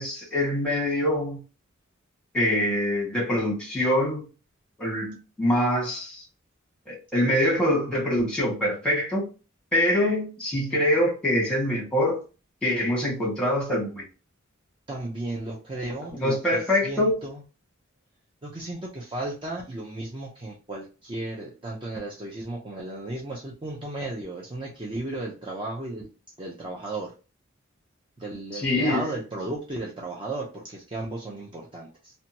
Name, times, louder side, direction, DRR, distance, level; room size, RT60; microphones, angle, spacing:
voice 1, 0.0-1.4 2.3-4.2 4.8-6.2 6.9-9.2 9.7-12.2 12.6-14.0 16.2-17.1 28.5-29.0, left 1 dB, 5° left, 1.2 m, -24 dB
voice 2, 14.9-17.4 18.4-26.1 26.4-27.1 28.2-32.1, right 2 dB, 25° right, 0.5 m, -34 dB
2.7 x 2.2 x 2.8 m
head